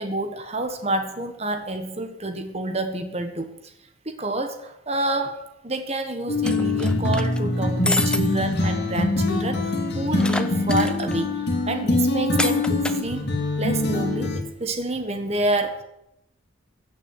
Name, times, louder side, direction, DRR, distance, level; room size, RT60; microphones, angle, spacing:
voice 1, 0.0-3.7 4.0-13.3 13.6-15.8, right 2 dB, 30° right, 7 dB, 1.5 m, -28 dB
sound 1, 6.3-14.4, left 2 dB, 55° left, 2.5 m, -23 dB
sound 2, 6.4-7.4 7.9-8.2 8.6-8.7 9.0-9.1 10.2-11.1 12.4-13.0, left 2 dB, 5° left, 0.6 m, -28 dB
16.0 x 6.2 x 9.8 m, 0.83 s
head